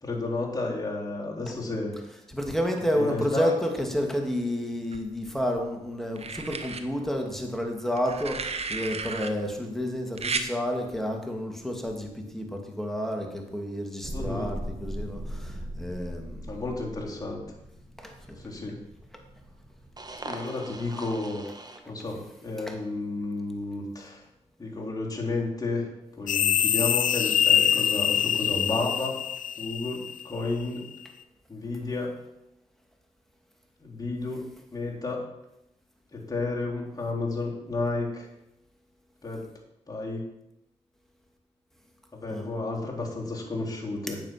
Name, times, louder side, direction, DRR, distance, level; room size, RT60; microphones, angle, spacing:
voice 1, 0.0-1.9 3.0-3.5 14.1-14.5 16.5-17.4 18.4-18.8 20.2-21.4 21.8-24.2 24.6-25.9 26.2-29.2 29.6-30.9 31.5-32.1 33.8-34.4 34.7-35.3 36.1-38.3 39.2-39.5 39.9-40.3 42.1-44.2, left 2 dB, 30° left, -3 dB, 3.8 m, -32 dB
voice 2, 2.3-16.5 18.0-18.4 22.6-22.8 42.3-42.5, equal, ahead, 2 dB, 2.6 m, -30 dB
sound 1, 4.9-5.6 6.2-6.8 8.0-9.3 10.2-10.5 11.9-12.1, right 4 dB, 50° right, 1.1 m, -33 dB
sound 2, 14.0-21.8, right 1 dB, 30° right, 1.5 m, -40 dB
sound 3, 26.3-30.5, left 9 dB, 75° left, 0.5 m, -24 dB
9.2 x 7.2 x 6.0 m, 0.88 s
supercardioid pair, 50°, 14 cm